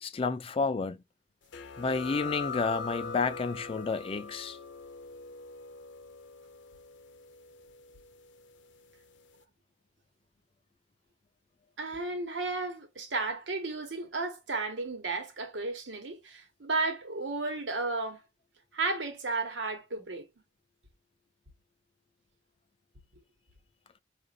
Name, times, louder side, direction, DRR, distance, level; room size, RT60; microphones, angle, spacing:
voice 1, 0.0-1.0 1.8-4.6, left 4 dB, 30° left, 0.4 m, -30 dB
sound 1, 1.5-8.8, left 5 dB, 90° left, 0.6 m, -42 dB
voice 2, 11.8-18.2 18.7-20.3, right 3 dB, 85° right, 1.1 m, -33 dB
5.1 x 2.5 x 2.4 m
head